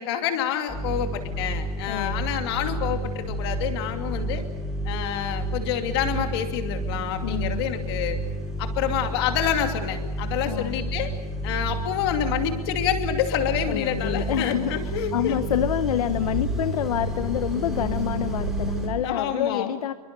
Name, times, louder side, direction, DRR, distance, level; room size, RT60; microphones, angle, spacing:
voice 1, 0.0-4.4 4.8-8.2 8.6-11.1 11.4-15.4 19.0-19.7, left 9 dB, 40° left, 5 dB, 2.7 m, -28 dB
sound 1, 0.7-18.9, right 1 dB, ahead, 5.4 m, -30 dB
voice 2, 1.9-2.4 7.2-7.7 10.4-10.9 13.7-19.9, left 10 dB, 75° left, 11 dB, 0.9 m, -27 dB
27.0 x 23.5 x 6.8 m, 1.2 s
supercardioid pair, 175°, 19 cm